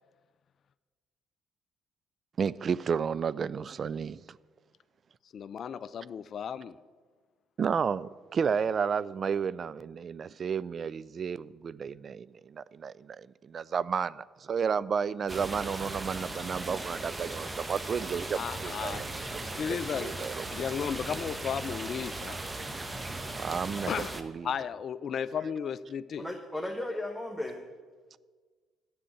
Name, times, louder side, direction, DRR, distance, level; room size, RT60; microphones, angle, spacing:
voice 1, 2.4-4.2 7.6-19.1 19.7-20.5 23.4-24.5, right 6 dB, 45° right, 19 dB, 0.3 m, -32 dB
voice 2, 5.3-6.8 18.3-22.4 23.9-24.1 24.4-26.3, left 7 dB, 55° left, 17 dB, 0.4 m, -35 dB
sound 1, 15.3-24.2, right 2 dB, 20° right, 1.1 m, -38 dB
voice 3, 26.2-27.6, left 1 dB, ahead, 2 dB, 1.2 m, -35 dB
7.6 x 7.5 x 8.3 m, 1.5 s
hypercardioid pair, 50°, 0 cm